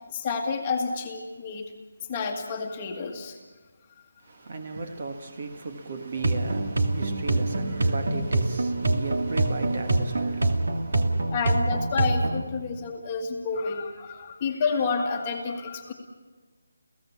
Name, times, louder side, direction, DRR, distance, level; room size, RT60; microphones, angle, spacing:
voice 1, 0.1-1.6 2.1-3.4 11.3-15.9, left 4 dB, 15° left, 1.6 m, -29 dB
voice 2, 4.2-11.3, right 3 dB, 35° right, 1.6 m, -36 dB
sound 1, 6.2-12.4, right 2 dB, 60° right, 2.3 m, -25 dB
29.5 x 16.5 x 7.2 m
hypercardioid pair, 175°, 0 cm